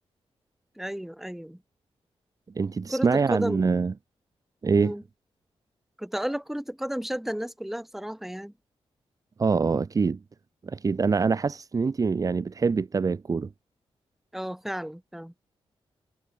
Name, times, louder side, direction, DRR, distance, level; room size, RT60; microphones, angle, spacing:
voice 1, 0.8-1.6 2.9-3.7 4.7-5.0 6.0-8.5 14.3-15.3, equal, 5° right, 5.1 m, -33 dB
voice 2, 2.5-3.9 4.6-4.9 9.4-10.2 10.6-13.5, right 4 dB, 35° right, 3.1 m, -24 dB
wide cardioid pair, 175°, 10 cm